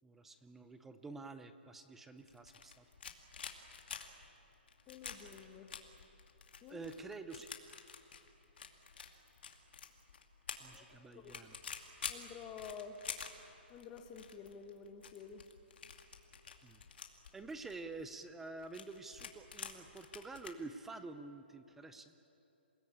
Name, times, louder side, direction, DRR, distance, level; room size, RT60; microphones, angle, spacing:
voice 1, 0.0-2.8 6.7-7.5 10.6-11.6 16.6-16.8 17.3-22.1, right 3 dB, 5° right, 9 dB, 0.5 m, -48 dB
sound 1, 2.2-20.5, left 6 dB, 65° left, 2.5 m, -49 dB
voice 2, 4.9-5.7 6.6-6.9 10.7-10.8 11.1-11.4 12.1-13.0 13.7-15.4, left 6 dB, 15° left, 5 dB, 1.3 m, -50 dB
28.5 x 19.0 x 8.6 m, 3.0 s
hypercardioid pair, 175°, 6 cm